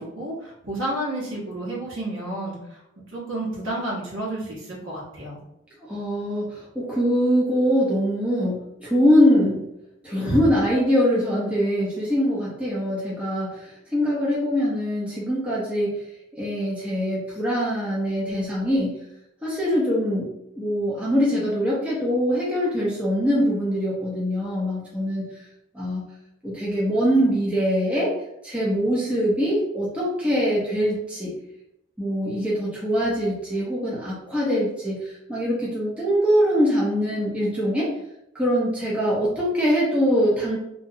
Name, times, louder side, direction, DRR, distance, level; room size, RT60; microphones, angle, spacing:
voice 1, 0.0-2.8 3.1-5.4, right 1 dB, 75° right, -6 dB, 1.1 m, -31 dB
voice 2, 5.8-9.7 10.0-16.0 16.4-19.0 19.4-25.5 25.7-26.1 26.4-28.1 28.4-31.3 32.0-37.9 38.3-40.6, equal, 5° right, -6 dB, 0.5 m, -23 dB
2.6 x 2.1 x 2.7 m, 0.83 s
head